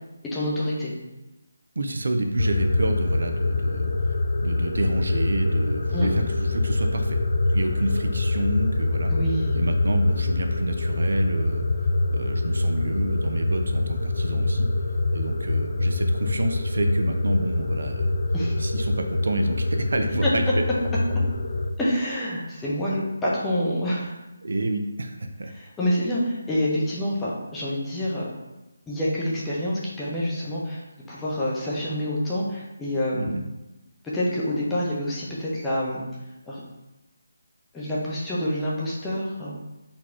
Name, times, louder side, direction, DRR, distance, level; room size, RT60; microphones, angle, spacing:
voice 1, 0.3-0.9 5.9-6.1 9.1-9.5 18.3-18.6 20.2-20.3 21.8-24.2 25.5-28.3 28.9-30.8 31.1-33.3 34.1-36.0 36.5-36.6 37.7-39.6, left 1 dB, 10° left, -7 dB, 0.8 m, -27 dB
voice 2, 1.8-7.2 7.5-9.1 9.5-14.7 15.1-18.1 18.6-20.7 24.4-25.5 33.1-33.4, right 2 dB, 60° right, 6 dB, 0.5 m, -29 dB
sound 1, 2.4-21.7, left 2 dB, 55° left, 0.4 m, -25 dB
4.1 x 2.3 x 4.4 m, 1.0 s
figure-of-eight pair, 150°, 0 cm